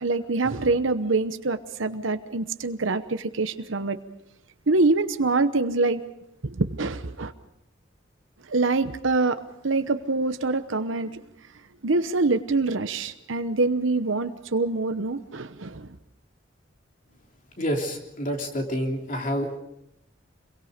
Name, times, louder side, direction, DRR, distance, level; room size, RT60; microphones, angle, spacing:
voice 1, 0.0-4.0 4.7-6.0 6.4-7.3 8.5-11.2 11.8-16.0, right 3 dB, 75° right, 10 dB, 1.0 m, -25 dB
voice 2, 17.6-19.6, equal, 40° left, 2 dB, 3.2 m, -28 dB
28.0 x 22.5 x 5.1 m, 0.84 s
head